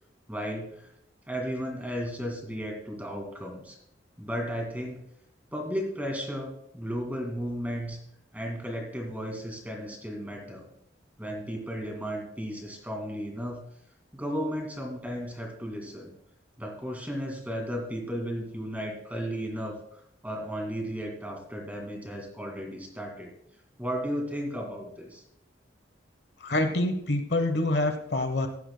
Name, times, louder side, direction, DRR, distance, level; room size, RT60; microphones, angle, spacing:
voice 1, 0.3-0.9 1.3-3.8 4.2-5.0 5.5-8.0 8.3-10.7 11.2-13.6 14.1-16.1 16.6-23.3 23.8-25.2, equal, 10° right, 1 dB, 2.1 m, -34 dB
voice 2, 26.4-28.5, left 2 dB, 65° left, 7 dB, 1.0 m, -26 dB
15.5 x 12.0 x 2.2 m, 0.72 s
head